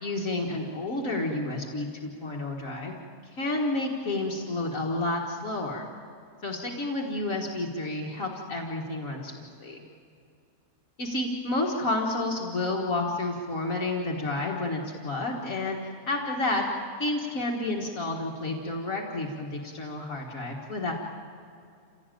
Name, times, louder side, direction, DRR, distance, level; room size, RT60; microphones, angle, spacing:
voice 1, 0.0-3.0 3.3-5.9 6.4-9.8 11.0-16.6 17.0-20.9, left 2 dB, 65° left, -1 dB, 2.2 m, -30 dB
27.5 x 17.0 x 9.2 m, 2.6 s
omnidirectional pair, 1.5 m